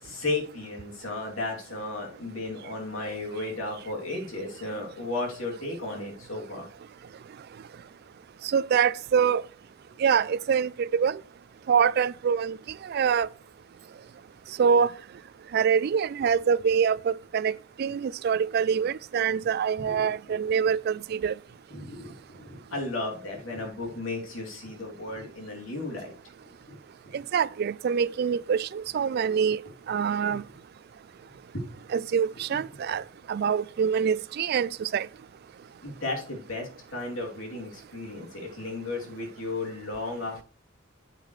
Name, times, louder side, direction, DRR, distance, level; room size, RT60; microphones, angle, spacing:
voice 1, 0.0-6.7 19.8-20.1 21.7-22.2 22.4-26.1 26.7-26.8 27.1-27.2 30.3-30.4 31.5-31.7 32.5-32.6 35.8-40.4, left 2 dB, 90° left, 2.9 m, -34 dB
voice 2, 8.4-9.4 10.0-11.2 11.7-12.6 12.8-13.3 14.6-14.9 15.5-17.5 17.8-21.3 27.1-29.6 29.9-30.4 31.9-33.0 33.3-35.1, right 7 dB, 50° right, 0.3 m, -25 dB
8.5 x 8.3 x 3.2 m
head